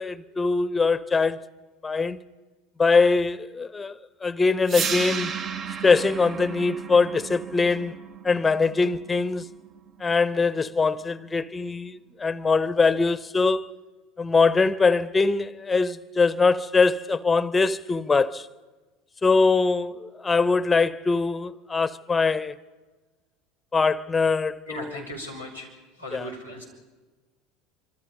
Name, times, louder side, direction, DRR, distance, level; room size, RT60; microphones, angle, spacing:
voice 1, 0.0-1.5 1.8-2.2 2.8-5.3 5.8-8.0 8.2-9.4 10.0-13.7 14.2-18.5 19.2-22.5 23.7-24.9 26.1-26.3, left 4 dB, 15° left, 0.8 m, -22 dB
sound 1, 4.7-10.7, right 6 dB, 35° right, 0.9 m, -34 dB
voice 2, 24.7-25.7 26.0-26.6, left 1 dB, 90° right, 5.4 m, -37 dB
26.0 x 26.0 x 5.3 m
figure-of-eight pair, 70°, 0 cm